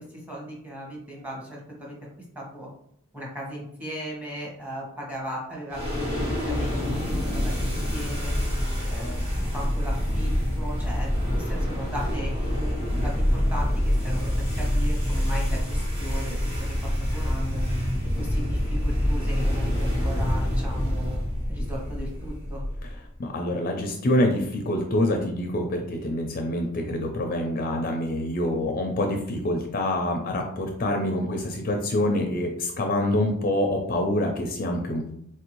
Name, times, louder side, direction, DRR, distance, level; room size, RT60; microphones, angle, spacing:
voice 1, 0.0-1.9 2.3-2.7 3.1-8.3 8.9-9.2 9.5-16.5 16.8-17.6 18.2-21.1 21.5-22.6, equal, 5° right, -4 dB, 1.0 m, -37 dB
sound 1, 5.7-23.1, equal, 30° right, 1.3 m, -26 dB
voice 2, 23.2-35.0, left 1 dB, 40° left, 3 dB, 0.4 m, -26 dB
4.3 x 2.6 x 3.0 m, 0.71 s
head